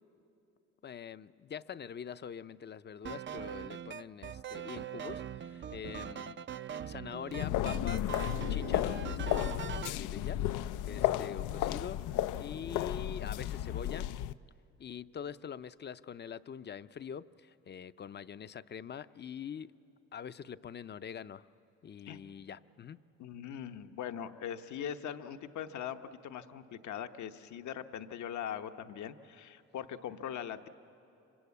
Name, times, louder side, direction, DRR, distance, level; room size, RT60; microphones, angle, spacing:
voice 1, 0.8-6.4 6.8-8.0 8.5-14.1 14.8-19.7 20.1-21.5 21.8-23.0, left 7 dB, 35° left, 14 dB, 0.6 m, -44 dB
sound 1, 3.0-10.0, right 9 dB, 40° right, 0.5 m, -42 dB
sound 2, 7.3-14.3, left 12 dB, 85° left, 0.5 m, -33 dB
voice 2, 23.2-30.7, left 9 dB, 70° left, 9 dB, 1.0 m, -41 dB
26.0 x 24.0 x 8.4 m, 2.8 s
cardioid pair, 90°, 30 cm